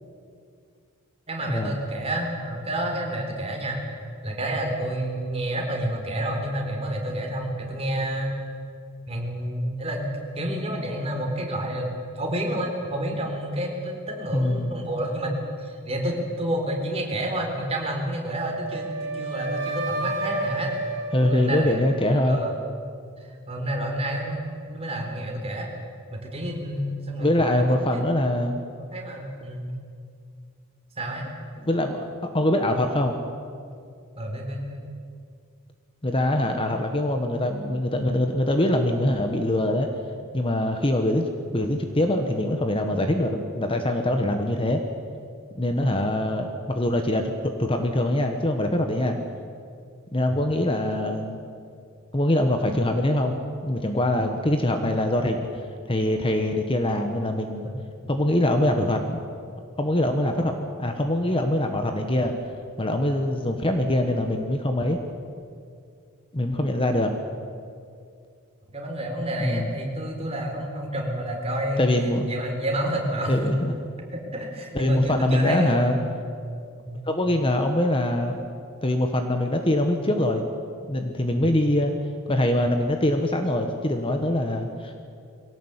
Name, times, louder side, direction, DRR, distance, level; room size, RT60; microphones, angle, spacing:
voice 1, 1.3-3.8 4.2-8.3 9.1-20.7 21.2-21.8 22.1-22.6 23.2-25.7 26.1-28.0 28.9-29.7 31.0-31.3 34.2-34.8 50.3-50.4 57.6-57.7 68.7-73.6 74.1-76.2 76.9-77.0, right 1 dB, 30° right, 1 dB, 4.1 m, -29 dB
voice 2, 14.3-14.7 21.1-22.4 27.2-28.6 31.6-32.0 32.3-33.2 36.0-39.9 40.3-41.2 41.5-44.8 45.5-47.3 47.6-49.2 50.1-51.4 52.1-53.4 53.6-55.4 55.9-57.7 58.1-59.2 59.8-62.3 62.8-65.0 66.3-67.1 69.4-69.7 71.8-72.3 73.3-73.6 74.7-76.0 77.1-78.4 78.8-80.4 80.9-81.9 82.3-84.9, left 1 dB, 25° left, 5 dB, 1.3 m, -23 dB
Wind instrument woodwind instrument, 18.3-22.4, right 2 dB, 55° right, 3.4 m, -31 dB
22.5 x 17.5 x 8.2 m, 2.3 s
head